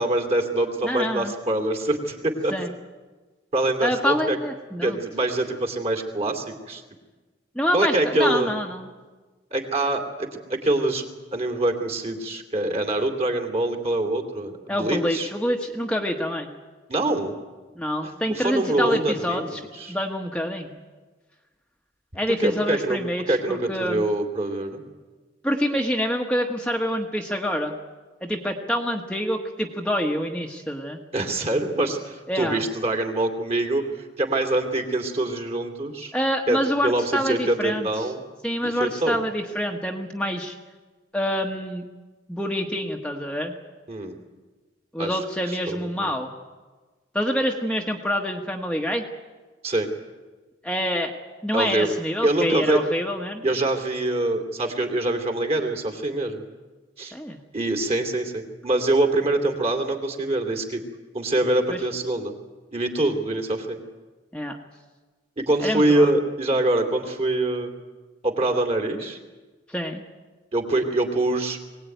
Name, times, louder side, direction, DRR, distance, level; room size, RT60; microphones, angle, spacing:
voice 1, 0.0-2.5 3.5-4.4 4.8-6.8 7.7-8.5 9.5-11.0 11.3-15.3 16.9-17.3 18.0-20.0 22.4-23.0 23.3-24.8 31.1-36.1 36.5-38.2 38.6-39.2 43.9-44.1 45.0-45.2 45.5-46.1 49.6-49.9 51.5-51.9 52.2-52.8 53.4-56.4 57.0-57.1 57.5-60.8 61.1-62.3 62.7-63.8 65.4-67.7 68.2-69.2 70.5-71.6, right 2 dB, 35° right, 4 dB, 2.8 m, -24 dB
voice 2, 0.8-1.3 2.5-2.7 3.8-5.0 7.5-8.9 14.7-16.5 17.8-19.6 19.9-20.7 22.1-24.0 25.4-27.7 28.2-31.0 32.3-32.6 36.1-37.9 38.4-40.5 41.1-41.8 42.3-43.5 44.9-46.3 47.1-49.0 50.6-51.1 51.4-53.4 57.1-57.4 61.7-61.8 64.3-64.6 65.6-66.1 69.7-70.0, equal, 5° left, 1 dB, 1.3 m, -26 dB
22.5 x 18.0 x 9.3 m, 1.3 s
head